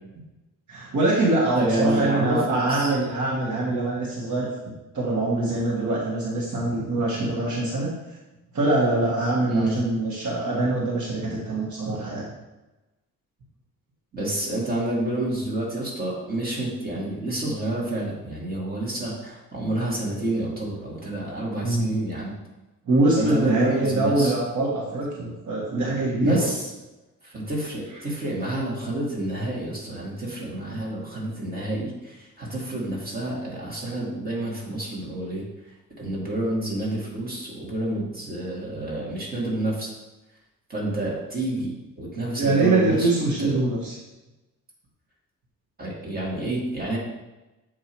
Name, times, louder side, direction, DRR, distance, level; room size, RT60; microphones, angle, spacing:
voice 1, 0.7-4.5 4.9-7.9 8.5-12.2 21.6-21.9 22.9-26.5 42.4-43.9, right 2 dB, 60° right, -4 dB, 1.5 m, -23 dB
voice 2, 1.6-2.9 9.5-9.8 14.1-22.3 23.2-24.3 26.2-26.7 27.2-35.5 36.0-39.9 40.7-43.1 43.4-43.5 45.8-47.0, right 1 dB, 25° right, -4 dB, 2.2 m, -29 dB
7.2 x 4.8 x 4.5 m, 1.0 s
cardioid pair, 150°, 34 cm